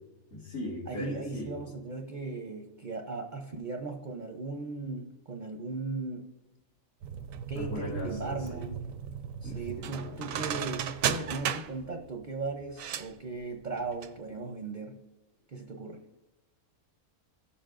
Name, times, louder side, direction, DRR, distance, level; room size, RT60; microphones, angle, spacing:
voice 1, 0.3-1.5 7.6-8.7 9.4-10.5, left 1 dB, 90° left, -9 dB, 2.5 m, -39 dB
voice 2, 0.9-6.2 7.5-8.8 9.4-14.9 15.5-16.0, right 3 dB, 45° right, 3 dB, 0.7 m, -37 dB
sound 1, 7.0-14.1 14.4-14.5, right 8 dB, 70° right, 0.9 m, -35 dB
16.0 x 7.1 x 2.5 m, 1.1 s
omnidirectional pair, 1.6 m